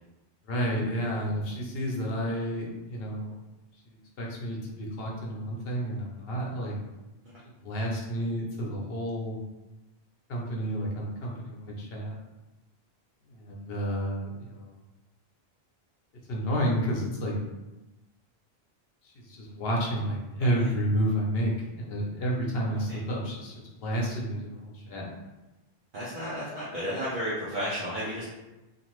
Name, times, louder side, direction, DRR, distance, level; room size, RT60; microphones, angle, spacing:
voice 1, 0.5-3.3 3.9-6.8 7.6-9.4 10.3-12.2 13.3-14.7 16.3-17.4 19.1-23.5 23.8-25.1, equal, 70° left, -2 dB, 0.9 m, -30 dB
voice 2, 20.4-20.7 22.9-23.0 25.9-28.2, equal, 60° right, -8 dB, 0.8 m, -33 dB
2.5 x 2.5 x 3.0 m, 1.0 s
omnidirectional pair, 1.0 m